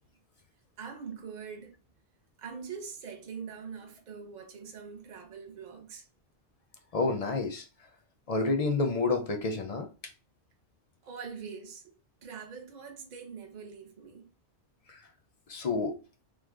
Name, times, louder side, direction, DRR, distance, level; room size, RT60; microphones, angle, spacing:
voice 1, 0.8-1.7 2.4-6.0 11.0-11.9 12.2-14.3, right 6 dB, 45° right, 0.7 m, -43 dB
voice 2, 6.9-7.7 8.3-9.9 14.9-15.1 15.5-15.9, left 3 dB, 50° left, 0.4 m, -29 dB
3.2 x 2.0 x 3.4 m
omnidirectional pair, 1.2 m